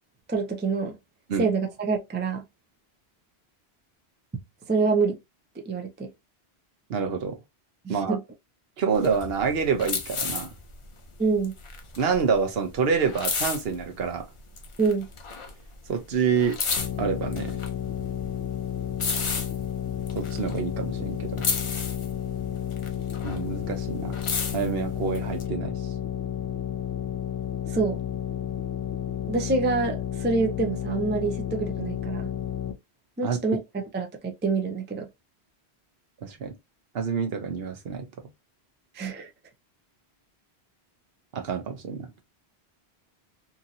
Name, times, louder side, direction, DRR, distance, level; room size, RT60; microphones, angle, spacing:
voice 1, 0.3-1.0 1.4-2.4 4.7-5.2 5.6-6.1 7.8-8.2 11.2-11.5 14.8-15.1 27.7-28.0 29.3-32.3 33.2-33.6 33.9-35.1 38.9-39.3, right 4 dB, 15° right, 0.3 m, -26 dB
voice 2, 6.9-7.4 7.9-8.2 8.8-10.5 12.0-14.3 15.9-16.6 17.0-17.6 20.2-21.4 23.2-24.2 24.5-25.7 33.2-33.4 36.2-36.5 36.9-38.1 41.3-42.1, right 6 dB, 70° right, 0.9 m, -27 dB
sound 1, 8.9-14.2 14.5-15.9 16.1-21.1 21.4-23.6 23.9-25.4, left 4 dB, 40° left, 0.5 m, -33 dB
sound 2, 16.8-32.7, left 10 dB, 70° left, 0.8 m, -32 dB
2.9 x 2.5 x 2.6 m
omnidirectional pair, 1.1 m